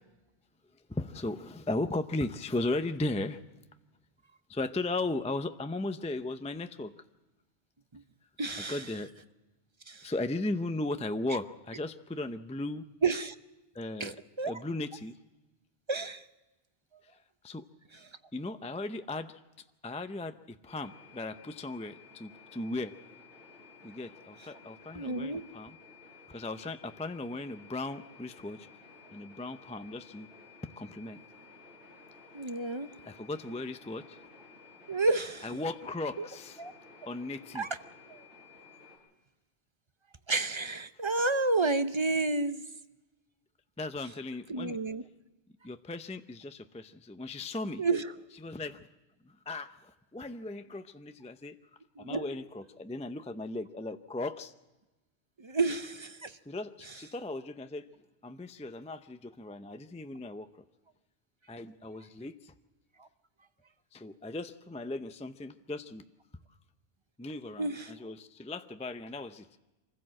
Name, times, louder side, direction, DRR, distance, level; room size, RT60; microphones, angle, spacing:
voice 1, 0.9-3.4 4.5-6.9 8.7-9.1 10.0-12.9 13.7-14.2 14.4-15.2 17.4-17.7 18.3-19.3 19.8-22.9 23.8-25.8 26.3-28.7 29.1-30.3 30.8-31.2 33.0-34.2 35.4-36.6 37.1-37.7 43.8-44.8 45.6-47.8 48.4-48.9 49.2-51.6 52.0-54.5 56.5-57.9 58.2-60.6 61.5-62.5 63.9-66.0 67.2-69.5, left 2 dB, 10° left, 9 dB, 0.5 m, -37 dB
voice 2, 8.4-8.9 9.9-10.1 13.0-13.3 14.0-14.6 15.9-16.3 24.9-25.4 32.3-32.9 34.9-35.6 36.2-36.3 36.6-36.7 37.5-37.7 38.1-38.2 40.3-42.6 44.5-45.0 47.8-48.1 52.0-52.2 55.4-56.4 56.9-57.0 63.0-63.1 67.6-67.9, right 3 dB, 30° right, 11 dB, 0.7 m, -30 dB
sound 1, 20.7-39.0, left 4 dB, 60° right, 6.9 m, -54 dB
25.0 x 15.5 x 7.6 m, 1.1 s
omnidirectional pair, 1.1 m